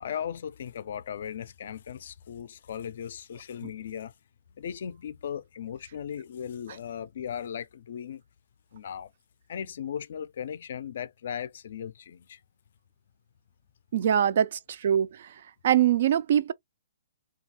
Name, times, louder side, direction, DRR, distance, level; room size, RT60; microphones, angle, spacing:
voice 1, 0.0-4.1 4.6-8.2 8.7-9.1 9.5-12.4, left 8 dB, 60° left, 0.3 m, -37 dB
voice 2, 13.9-16.5, right 10 dB, 55° right, 0.3 m, -24 dB
2.8 x 2.3 x 2.7 m
hypercardioid pair, 155°, 0 cm